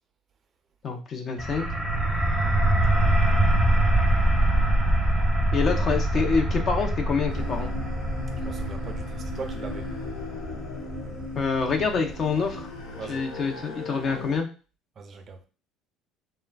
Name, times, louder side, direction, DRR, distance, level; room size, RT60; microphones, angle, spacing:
voice 1, 0.8-1.7 5.5-7.7 11.3-12.7 13.1-14.5, left 5 dB, 45° left, 0.6 m, -26 dB
sound 1, 1.4-12.9, right 1 dB, 5° left, 0.7 m, -24 dB
sound 2, 7.3-14.4, left 2 dB, 85° left, 0.7 m, -37 dB
voice 2, 8.4-9.9 13.0-13.3 15.0-15.4, right 5 dB, 45° right, 0.5 m, -39 dB
3.1 x 2.2 x 2.3 m
supercardioid pair, 90°, 0 cm